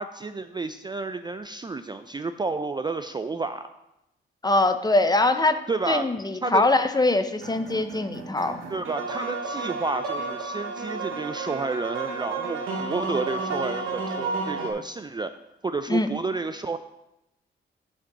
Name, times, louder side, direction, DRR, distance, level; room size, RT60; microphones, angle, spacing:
voice 1, 0.0-3.7 5.7-6.1 6.4-6.6 8.7-15.3 15.6-16.8, right 3 dB, 20° right, 10 dB, 0.4 m, -30 dB
voice 2, 4.4-5.6 5.9-8.6 15.9-16.1, left 2 dB, 20° left, 9 dB, 0.7 m, -22 dB
sound 1, 7.4-14.7, right 3 dB, 90° right, 1.2 m, -32 dB
5.8 x 5.1 x 6.7 m, 0.88 s
cardioid pair, 75°, 20 cm